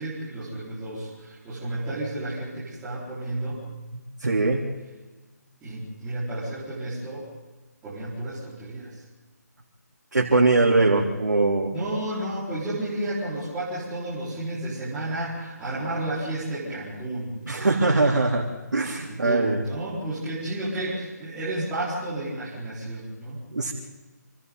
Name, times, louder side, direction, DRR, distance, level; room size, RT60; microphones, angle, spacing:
voice 1, 0.0-3.6 5.6-7.3 7.8-8.9 11.7-17.4 19.1-23.4, right 1 dB, 10° right, -10 dB, 4.6 m, -32 dB
voice 2, 3.9-4.6 10.1-11.7 17.5-18.5 18.7-19.6 23.5-23.7, right 3 dB, 90° right, -3 dB, 3.5 m, -21 dB
28.0 x 26.0 x 4.0 m, 1.2 s
hypercardioid pair, 165°, 10 cm